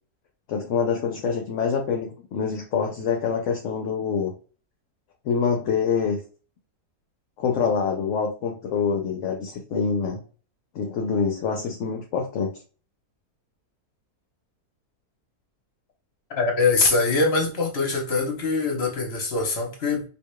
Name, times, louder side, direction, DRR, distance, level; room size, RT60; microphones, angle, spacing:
voice 1, 0.5-4.3 5.2-6.2 7.4-10.2 10.7-12.5, left 6 dB, 60° left, 1.0 m, -25 dB
voice 2, 16.3-20.0, left 3 dB, 45° left, 1.3 m, -23 dB
4.7 x 2.8 x 2.2 m
omnidirectional pair, 1.6 m